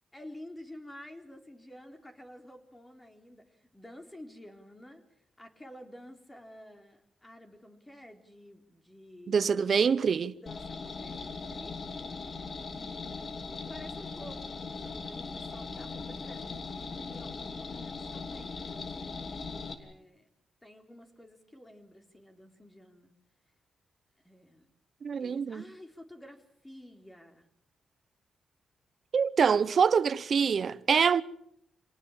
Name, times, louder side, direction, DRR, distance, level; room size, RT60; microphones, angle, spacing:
voice 1, 0.1-5.0 5.4-9.6 10.4-12.1 12.7-19.2 19.8-20.3 20.6-23.1 24.2-24.7 25.2-27.5, left 1 dB, 15° left, 4.0 m, -51 dB
voice 2, 9.3-10.4 25.0-25.6 29.1-31.2, right 6 dB, 55° right, 0.9 m, -25 dB
sound 1, 10.5-19.7, left 4 dB, 50° left, 2.9 m, -39 dB
27.5 x 19.0 x 7.4 m
cardioid pair, 95°, 0 cm